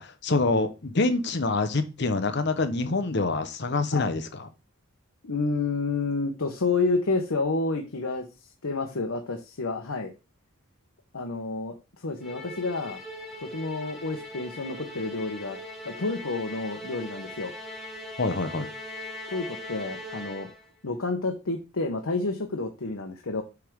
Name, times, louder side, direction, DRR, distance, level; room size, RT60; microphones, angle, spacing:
voice 1, 0.0-4.2 18.2-18.7, left 3 dB, 55° left, 10 dB, 0.9 m, -26 dB
voice 2, 5.2-10.1 11.1-13.0 13.4-15.6 15.8-17.5 19.3-20.5 20.8-23.4, left 3 dB, 80° left, 3 dB, 1.1 m, -29 dB
Musical instrument, 12.2-20.7, left 1 dB, ahead, 1.3 m, -40 dB
8.3 x 3.6 x 6.2 m, 0.29 s
head